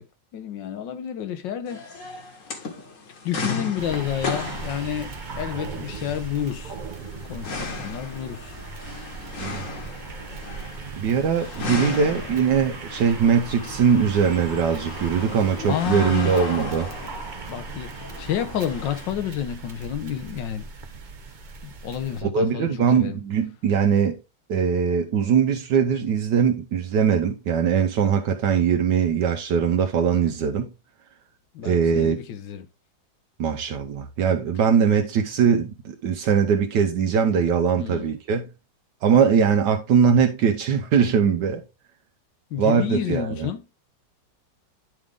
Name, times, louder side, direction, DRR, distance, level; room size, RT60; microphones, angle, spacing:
voice 1, 0.3-1.8 2.6-2.7 3.2-6.7 7.3-8.6 11.7-12.1 15.7-16.3 17.5-20.7 21.8-23.2 31.5-32.7 37.8-38.1 42.5-43.6, left 10 dB, 90° left, 1.6 m, -30 dB
sound 1, 1.7-19.1, left 4 dB, 50° left, 1.5 m, -36 dB
sound 2, 3.8-22.2, right 4 dB, 50° right, 0.5 m, -38 dB
voice 2, 11.0-16.9 22.2-24.2 24.5-30.7 31.6-32.2 33.4-38.5 39.0-41.6 42.6-43.5, right 7 dB, 75° right, 1.3 m, -21 dB
9.7 x 3.8 x 3.5 m
omnidirectional pair, 1.9 m